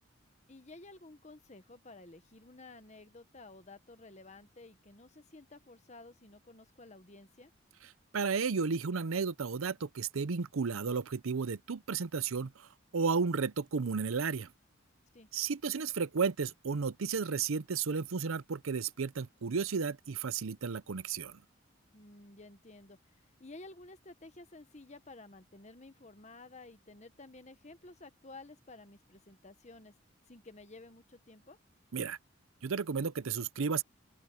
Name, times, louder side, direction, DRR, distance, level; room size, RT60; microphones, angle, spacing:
voice 1, 0.5-7.5 15.1-15.3 21.9-23.0 23.2-29.9 30.3-31.6, left 2 dB, 35° left, 1.3 m, -53 dB
voice 2, 8.1-12.7 12.9-14.5 15.3-21.4 31.9-32.2 32.6-33.8, right 5 dB, 90° right, 0.6 m, -33 dB
open air
head